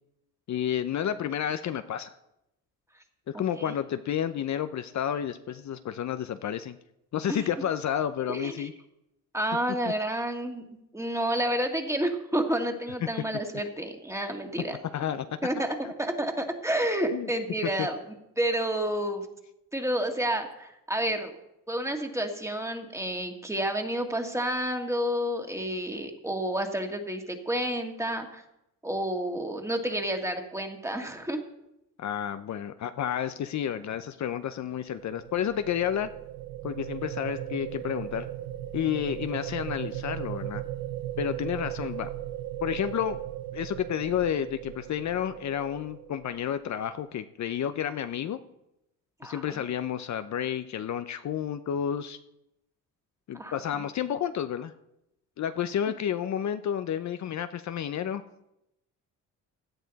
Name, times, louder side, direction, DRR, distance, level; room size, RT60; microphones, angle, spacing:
voice 1, 0.5-2.1 3.3-6.8 7.1-8.7 14.9-15.3 17.1-17.3 17.8-17.9 32.0-36.1 36.6-38.3 38.7-40.6 41.2-42.1 42.6-43.2 43.5-48.4 49.2-52.2 53.3-54.7 55.4-58.2, left 9 dB, 55° left, 10 dB, 0.7 m, -30 dB
voice 2, 3.3-3.7 7.3-7.4 8.3-8.7 9.3-10.6 10.9-14.8 15.4-19.3 19.7-21.4 21.7-28.4 28.8-31.4 49.2-49.7 53.3-53.8, right 1 dB, 10° right, 4 dB, 1.8 m, -30 dB
sound 1, 34.6-46.8, right 13 dB, 65° right, 0.7 m, -37 dB
17.0 x 11.0 x 4.1 m, 0.86 s
cardioid pair, 95°, 35 cm